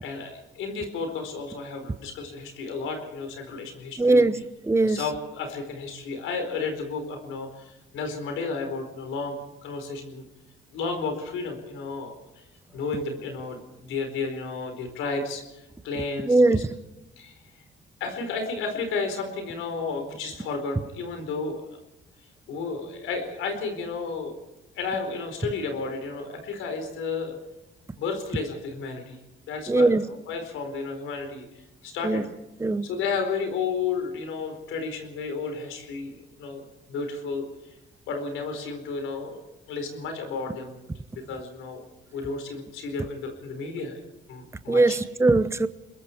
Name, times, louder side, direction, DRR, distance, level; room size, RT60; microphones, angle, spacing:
voice 1, 0.0-4.3 4.8-10.2 10.7-12.4 12.7-16.6 17.2-17.6 18.0-21.6 22.5-24.3 24.7-27.4 28.0-29.2 29.5-30.0 30.3-32.3 32.8-37.7 38.1-39.4 39.7-40.8 41.1-41.8 42.1-44.0 44.3-45.0, left 4 dB, 90° left, 4.5 m, -32 dB
voice 2, 4.0-5.0 16.3-16.7 29.7-30.1 32.0-32.2 32.6-32.9 44.7-45.7, right 2 dB, 15° right, 0.9 m, -21 dB
28.5 x 21.5 x 4.6 m
cardioid pair, 90°, 20 cm